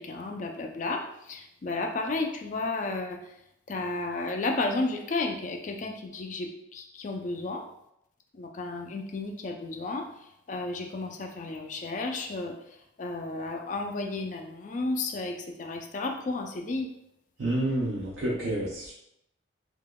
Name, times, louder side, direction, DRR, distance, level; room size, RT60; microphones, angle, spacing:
voice 1, 0.0-3.2 3.7-7.6 8.3-10.1 10.5-12.6 13.0-16.9, left 3 dB, 40° left, 3 dB, 0.3 m, -32 dB
voice 2, 17.4-18.9, right 1 dB, 75° right, -5 dB, 0.6 m, -29 dB
3.5 x 2.8 x 2.2 m, 0.80 s
head